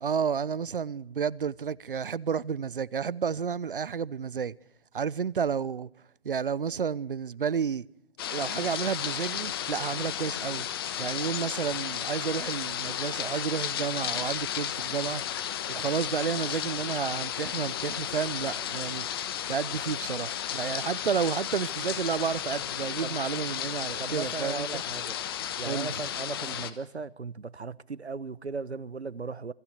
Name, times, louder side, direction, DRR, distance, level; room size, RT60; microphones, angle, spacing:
voice 1, 0.0-4.5 4.9-5.9 6.2-7.9 8.3-10.7 11.0-15.2 15.7-19.1 19.5-24.8 25.6-26.0, right 7 dB, 55° right, 0.9 m, -31 dB
sound 1, 8.2-26.7, left 10 dB, 20° left, 1.3 m, -33 dB
voice 2, 24.0-25.2 25.6-29.5, right 4 dB, 85° right, 1.2 m, -37 dB
28.0 x 23.0 x 6.6 m
figure-of-eight pair, 150°, 32 cm